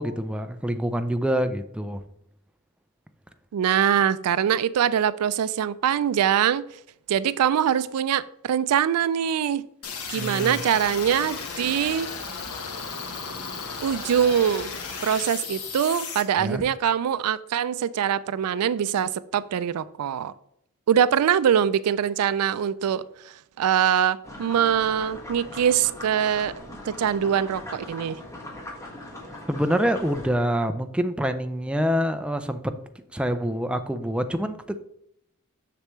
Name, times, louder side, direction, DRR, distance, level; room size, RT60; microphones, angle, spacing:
voice 1, 0.0-2.0 10.1-10.6 16.4-16.6 29.5-32.7 33.1-34.8, equal, 5° right, 8 dB, 0.4 m, -26 dB
voice 2, 3.5-6.6 7.1-9.6 10.1-12.1 13.8-14.7 15.0-20.3 20.9-23.0 23.6-26.5 26.9-28.2, right 9 dB, 80° right, 16 dB, 0.3 m, -23 dB
sound 1, 9.8-16.2, left 5 dB, 85° left, 1.1 m, -34 dB
sound 2, 24.2-30.3, left 1 dB, 15° left, 1.5 m, -40 dB
6.7 x 6.6 x 3.1 m, 0.73 s
head